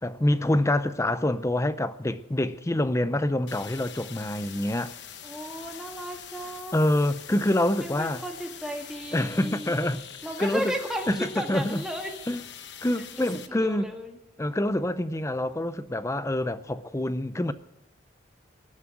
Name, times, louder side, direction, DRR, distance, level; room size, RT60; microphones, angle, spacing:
voice 1, 0.0-4.9 6.7-8.2 9.1-10.0 10.4-10.7 11.1-11.8 12.3-12.4 12.8-13.9 14.4-17.5, left 1 dB, 15° left, 0.6 m, -26 dB
sound 1, 3.5-13.5, left 9 dB, 65° left, 1.1 m, -44 dB
voice 2, 5.2-7.1 7.8-9.8 10.2-12.1 13.1-13.3 13.6-14.2, equal, 5° right, 1.9 m, -35 dB
18.5 x 7.5 x 8.9 m
head